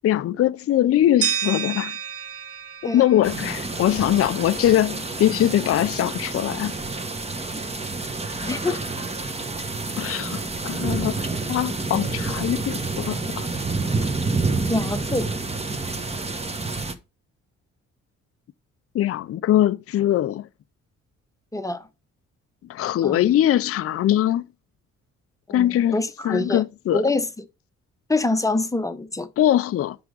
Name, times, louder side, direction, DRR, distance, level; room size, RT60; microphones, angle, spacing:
voice 1, 0.0-2.0 2.9-6.7 8.7-8.8 10.0-11.2 11.5-13.5 18.9-20.5 22.7-24.4 25.5-26.0 26.2-27.0 29.4-30.0, left 12 dB, 50° left, 0.5 m, -22 dB
sound 1, 1.2-4.1, right 9 dB, 50° right, 0.7 m, -30 dB
sound 2, 3.2-16.9, right 3 dB, 20° right, 1.0 m, -28 dB
voice 2, 8.4-8.8 14.7-15.3 21.5-21.9 23.0-23.2 25.5-26.6 26.9-27.3 28.1-29.3, left 2 dB, 10° left, 0.8 m, -25 dB
5.9 x 5.0 x 5.1 m
cardioid pair, 90°, 30 cm